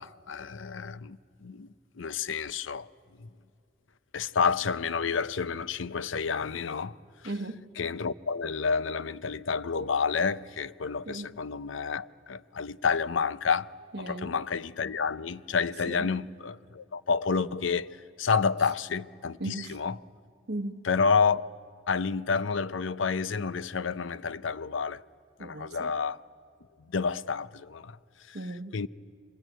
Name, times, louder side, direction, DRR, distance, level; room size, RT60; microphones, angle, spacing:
voice 1, 0.0-2.9 3.2-3.3 4.1-7.0 7.2-7.3 7.8-20.0 20.8-21.5 21.9-25.0 25.4-26.2 26.8-28.4 28.7-28.9, left 5 dB, 75° left, 0.6 m, -29 dB
voice 2, 7.2-7.6 11.1-11.3 13.9-14.3 15.9-16.1 19.4-19.8 20.5-20.8 25.4-25.9 28.3-28.8, right 1 dB, 55° right, 1.0 m, -36 dB
25.5 x 22.5 x 9.1 m
head